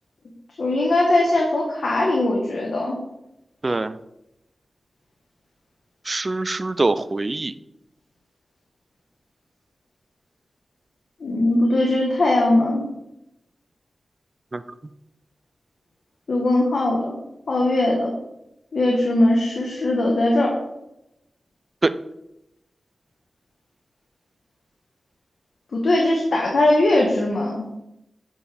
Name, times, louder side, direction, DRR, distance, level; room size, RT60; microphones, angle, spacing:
voice 1, 0.6-3.0 11.2-12.8 16.3-17.2 17.5-18.1 18.7-20.6 25.7-27.6, left 1 dB, 70° left, -2 dB, 1.1 m, -20 dB
voice 2, 3.6-4.0 6.1-7.5 14.5-14.6 21.8-21.9, right 2 dB, 35° right, 14 dB, 0.3 m, -23 dB
8.1 x 4.6 x 3.4 m, 0.87 s
wide cardioid pair, 70°, 0 cm